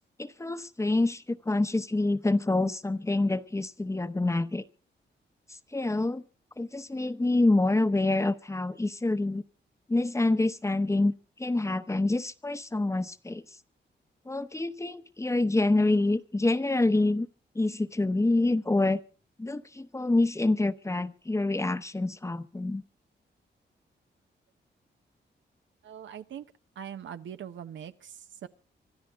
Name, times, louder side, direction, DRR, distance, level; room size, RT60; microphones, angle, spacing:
voice 1, 0.2-4.6 5.7-6.2 6.6-9.4 9.9-11.1 11.4-13.4 14.3-17.3 17.5-19.0 19.4-22.8, left 2 dB, 15° left, 0.8 m, -26 dB
voice 2, 25.8-26.5 26.8-28.5, right 9 dB, 85° right, 0.9 m, -42 dB
25.5 x 13.0 x 3.6 m
cardioid pair, 100°, 19 cm